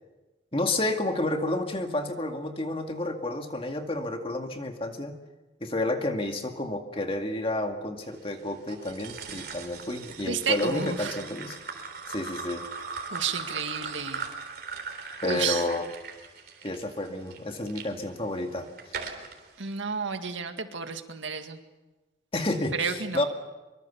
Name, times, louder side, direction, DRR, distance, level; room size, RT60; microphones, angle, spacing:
voice 1, 0.5-5.2 5.6-11.6 12.1-12.6 15.2-15.9 16.6-18.7 22.3-23.2, left 2 dB, 30° left, 5 dB, 2.0 m, -30 dB
sound 1, 8.7-17.9 18.4-19.4, right 4 dB, 50° right, 3.7 m, -39 dB
voice 2, 10.3-11.2 13.1-14.3 15.2-15.7 19.6-21.6 22.8-23.2, right 6 dB, 85° right, 7 dB, 2.0 m, -31 dB
24.5 x 24.0 x 7.1 m, 1.1 s
head